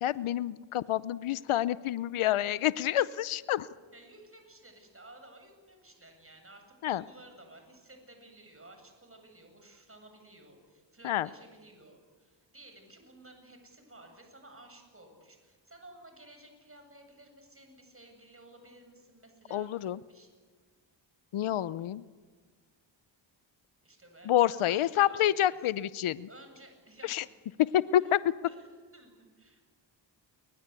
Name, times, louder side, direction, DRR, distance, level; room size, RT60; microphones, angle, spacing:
voice 1, 0.0-3.7 6.8-7.0 11.0-11.3 19.5-20.0 21.3-22.0 24.3-26.3 27.1-27.2 27.9-28.2, left 12 dB, 90° left, 17 dB, 0.7 m, -28 dB
voice 2, 3.9-20.3 23.8-25.6 26.3-27.3 28.0-28.1 28.5-29.6, right 1 dB, 25° right, 5 dB, 7.9 m, -55 dB
28.0 x 23.5 x 8.3 m, 1.4 s
cardioid pair, 60°, 48 cm